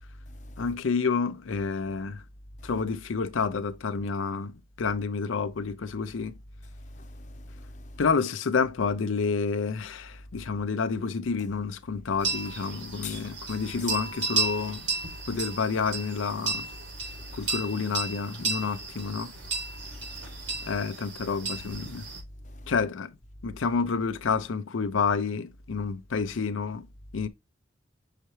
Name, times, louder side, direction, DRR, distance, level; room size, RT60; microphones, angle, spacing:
voice 1, 0.6-2.2 2.6-6.3 8.0-14.9 15.3-16.7 17.3-19.3 20.6-22.1 22.7-23.2 23.4-26.9 27.1-27.3, left 5 dB, 85° left, 0.5 m, -29 dB
voice 2, 7.0-7.9 13.0-13.2 13.8-13.9 17.2-17.4 19.8-20.6 22.4-22.7, left 3 dB, 40° left, 0.8 m, -43 dB
sound 1, 12.2-22.2, right 4 dB, 65° right, 3.4 m, -34 dB
5.7 x 5.7 x 3.1 m
head